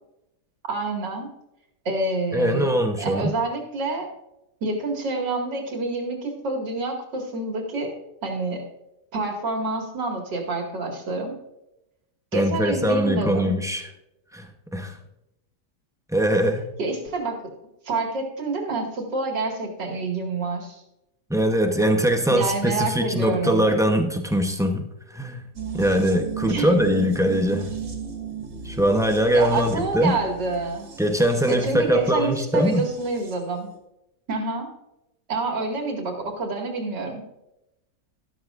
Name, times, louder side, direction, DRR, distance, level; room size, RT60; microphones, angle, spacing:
voice 1, 0.7-1.3 1.8-2.7 3.0-4.1 4.6-8.6 9.1-11.4 12.3-13.5 16.8-17.4 17.8-20.8 22.3-23.6 26.4-26.7 29.3-30.9 31.5-33.7 34.3-34.7 35.3-37.2, right 3 dB, 85° right, 1 dB, 2.8 m, -28 dB
voice 2, 2.3-3.3 12.3-13.9 14.3-15.0 16.1-16.7 21.3-25.4 25.7-27.7 28.6-30.2 31.0-32.8, equal, 5° right, 4 dB, 0.3 m, -22 dB
sound 1, 25.6-33.5 33.7-33.8, right 6 dB, 70° right, 2.8 m, -36 dB
13.0 x 13.0 x 2.5 m, 0.88 s
omnidirectional pair, 1.8 m